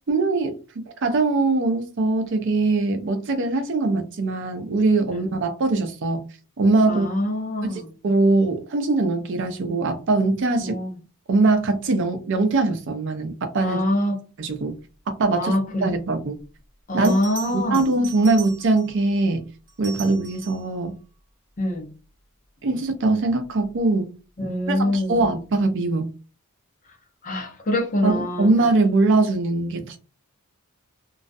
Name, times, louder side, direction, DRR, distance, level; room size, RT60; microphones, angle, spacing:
voice 1, 0.1-0.6 1.0-6.3 6.6-7.1 8.0-10.8 11.3-13.8 14.4-14.8 15.1-15.5 15.8-16.4 16.9-17.1 17.5-19.5 19.8-21.0 22.6-24.1 24.7-26.1 28.0-30.0, right 3 dB, 55° right, 0.5 m, -21 dB
voice 2, 6.9-7.9 10.6-10.9 13.6-14.2 15.3-15.9 16.9-17.9 21.6-21.9 24.4-25.3 27.2-28.5, left 1 dB, 35° left, 0.6 m, -25 dB
Bell, 16.4-16.5 17.0-19.0 19.7-20.8 23.4-23.7, right 6 dB, 40° right, 1.0 m, -40 dB
2.3 x 2.1 x 2.5 m
head